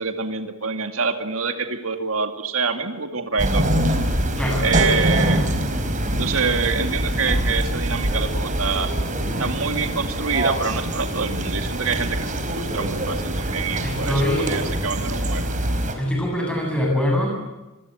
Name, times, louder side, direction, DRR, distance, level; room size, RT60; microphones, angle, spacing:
voice 1, 0.0-3.6 4.6-5.5 6.1-8.9 9.4-15.5, right 4 dB, 75° right, 6 dB, 2.3 m, -26 dB
sound 1, 3.4-15.9, right 1 dB, 40° right, 4.4 m, -24 dB
voice 2, 13.8-14.6 16.0-17.4, left 1 dB, 5° left, 0 dB, 7.9 m, -23 dB
26.5 x 22.0 x 7.9 m, 1.1 s
head